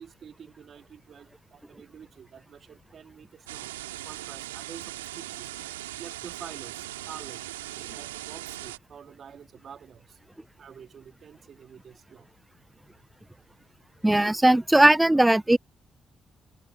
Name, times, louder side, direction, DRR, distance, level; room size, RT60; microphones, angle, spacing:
voice 1, 0.0-5.5 6.0-10.2 10.6-12.3, right 7 dB, 55° right, 3.1 m, -48 dB
sound 1, 3.5-8.8, right 15 dB, 90° right, 2.5 m, -39 dB
voice 2, 14.0-15.6, right 1 dB, 10° right, 0.7 m, -18 dB
hypercardioid pair, 40°, 0 cm